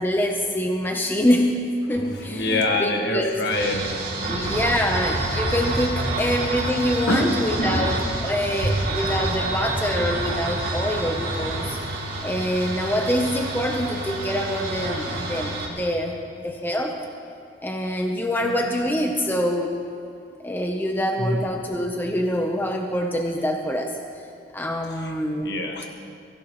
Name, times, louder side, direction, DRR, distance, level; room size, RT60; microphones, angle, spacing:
voice 1, 0.0-1.6 1.9-3.4 4.3-11.8 12.2-17.0 17.6-19.8 20.4-24.0 24.5-25.5, equal, 10° left, 2 dB, 0.8 m, -25 dB
voice 2, 2.0-4.8 6.2-6.3 7.1-7.3 7.6-7.9 8.6-8.8 18.4-18.7 21.2-21.5 25.0-25.1 25.4-25.9, left 1 dB, 60° left, 2 dB, 1.8 m, -26 dB
sound 1, 3.5-15.7, right 2 dB, 55° right, 3.0 m, -28 dB
23.0 x 15.5 x 3.2 m, 2.4 s
head